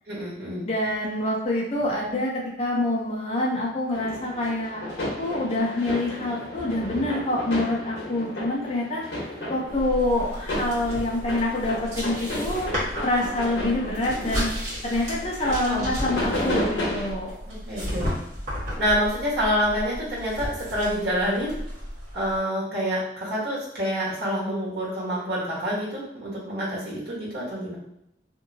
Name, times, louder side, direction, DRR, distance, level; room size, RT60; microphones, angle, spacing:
voice 1, 0.1-0.7 15.6-15.9 17.6-18.2 18.8-21.6 22.1-27.8, equal, 65° right, -6 dB, 1.2 m, -27 dB
voice 2, 0.6-4.8 5.2-9.0 9.5-12.7 13.0-14.5 14.8-17.4, left 1 dB, 35° left, -3 dB, 0.7 m, -26 dB
sound 1, 3.9-17.1, left 1 dB, 80° left, 1.0 m, -33 dB
sound 2, 9.7-22.4, equal, 40° right, 1.4 m, -34 dB
2.7 x 2.7 x 2.7 m, 0.79 s
head